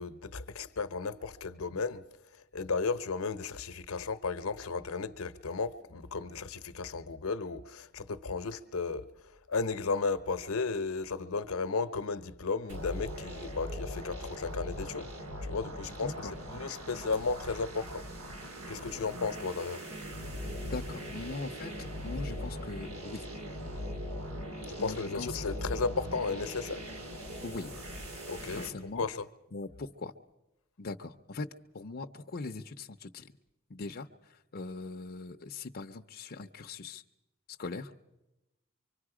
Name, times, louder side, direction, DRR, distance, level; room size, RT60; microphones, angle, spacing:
voice 1, 0.0-2.0 2.5-9.1 9.5-15.1 15.4-18.1 18.7-19.8 24.7-26.9 28.3-28.7 29.0-29.3, left 4 dB, 75° left, 0.8 m, -34 dB
sound 1, 12.7-28.7, equal, 85° right, 2.4 m, -40 dB
voice 2, 16.0-16.3 20.5-23.3 24.8-25.3 27.4-27.7 28.5-29.0 29.5-30.1 30.8-31.5 31.7-33.3 33.7-37.0 37.6-37.9, left 3 dB, 45° left, 0.6 m, -41 dB
25.0 x 24.5 x 4.9 m
head